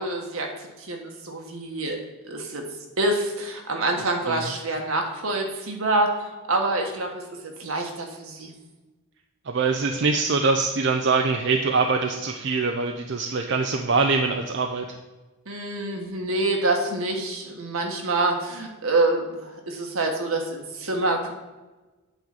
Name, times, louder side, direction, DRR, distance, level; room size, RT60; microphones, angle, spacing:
voice 1, 0.0-2.6 3.0-7.2 7.6-8.5 15.5-21.3, right 2 dB, 80° right, 2 dB, 1.5 m, -26 dB
voice 2, 9.5-14.9, right 4 dB, 55° right, 4 dB, 0.5 m, -23 dB
8.9 x 3.9 x 7.1 m, 1.2 s
head